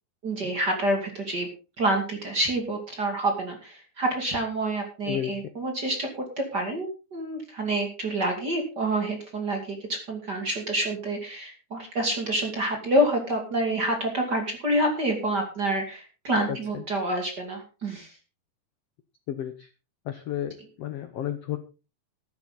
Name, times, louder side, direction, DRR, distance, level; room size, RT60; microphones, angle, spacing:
voice 1, 0.2-1.5 1.8-18.1, right 1 dB, 30° right, 3 dB, 2.6 m, -27 dB
voice 2, 5.0-5.4 16.5-16.8 19.3-19.7 20.0-21.6, left 11 dB, 85° left, 10 dB, 1.3 m, -32 dB
14.5 x 11.5 x 4.0 m, 0.32 s
omnidirectional pair, 4.3 m